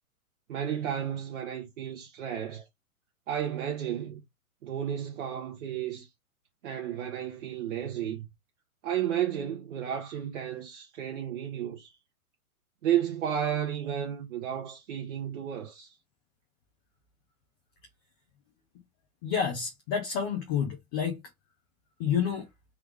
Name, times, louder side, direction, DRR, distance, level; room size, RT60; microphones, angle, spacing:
voice 1, 0.5-2.6 3.3-4.2 4.6-6.1 6.6-8.3 8.8-11.9 12.8-15.9, right 10 dB, 55° right, 1.1 m, -32 dB
voice 2, 19.2-21.2 22.0-22.4, left 7 dB, 15° left, 0.4 m, -29 dB
3.6 x 3.3 x 3.3 m
hypercardioid pair, 125°, 44 cm